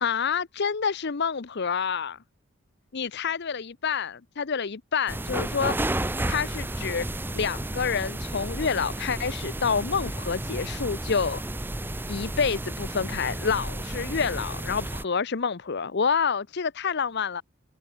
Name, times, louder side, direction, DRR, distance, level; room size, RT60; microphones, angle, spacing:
voice 1, 0.0-2.2 2.9-5.8 6.3-7.1 7.3-11.4 12.1-17.4, left 6 dB, 50° left, 0.6 m, -28 dB
sound 1, 5.1-15.0, right 1 dB, 10° right, 0.8 m, -32 dB
head